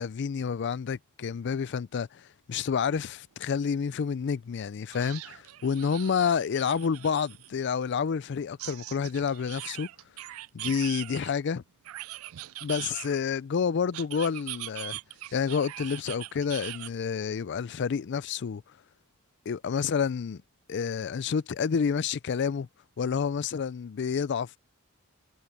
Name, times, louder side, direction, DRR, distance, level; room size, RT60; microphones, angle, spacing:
voice 1, 0.0-9.9 10.5-11.6 12.6-15.0 15.3-18.6 19.5-20.4 20.7-22.7 23.0-24.6, left 6 dB, 55° left, 0.4 m, -29 dB
sound 1, 3.4-3.5 3.9-4.0 4.9-7.5 8.6-11.3 11.8-13.4 13.9-16.9, right 16 dB, 75° right, 0.4 m, -41 dB
head